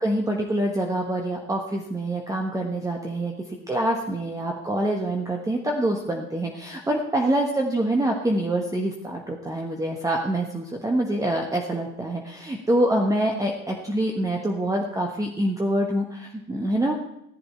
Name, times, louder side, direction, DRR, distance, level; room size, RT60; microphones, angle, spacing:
voice 1, 0.0-16.9, right 1 dB, 10° right, 1 dB, 1.3 m, -25 dB
16.0 x 11.0 x 4.4 m, 0.83 s
figure-of-eight pair, 70°, 43 cm